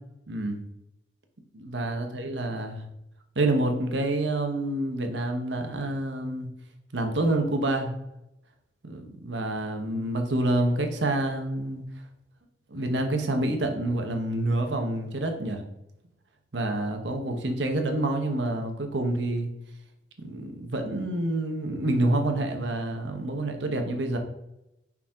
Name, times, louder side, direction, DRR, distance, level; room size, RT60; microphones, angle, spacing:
voice 1, 0.3-0.6 1.5-2.8 3.3-6.5 6.9-7.9 8.8-11.8 12.7-15.6 16.5-19.5 20.2-24.2, right 1 dB, 85° right, 5 dB, 1.0 m, -27 dB
5.5 x 4.8 x 3.7 m, 0.83 s
head